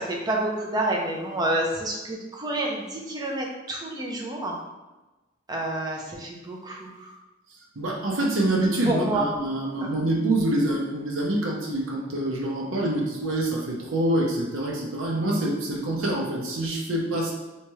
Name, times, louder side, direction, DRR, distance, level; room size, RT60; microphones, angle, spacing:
voice 1, 0.0-4.6 5.5-7.1 8.8-9.3 9.8-9.9, right 1 dB, 20° right, -1 dB, 0.6 m, -28 dB
voice 2, 7.8-17.3, right 1 dB, 85° right, -1 dB, 0.6 m, -26 dB
3.4 x 2.9 x 3.0 m, 1.1 s
head